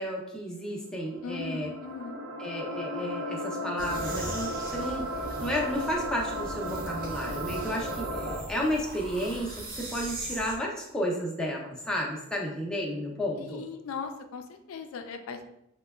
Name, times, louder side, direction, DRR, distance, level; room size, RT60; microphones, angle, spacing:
voice 1, 0.0-1.7 2.4-5.1 5.4-13.6, equal, 5° left, -2 dB, 0.4 m, -32 dB
sound 1, 1.0-8.4, equal, 80° right, 0.6 m, -35 dB
voice 2, 1.2-2.2 13.5-15.5, left 5 dB, 85° left, 6 dB, 0.3 m, -38 dB
sound 2, 3.8-10.6, right 1 dB, 40° right, 0.6 m, -39 dB
4.8 x 2.1 x 2.2 m, 0.82 s
head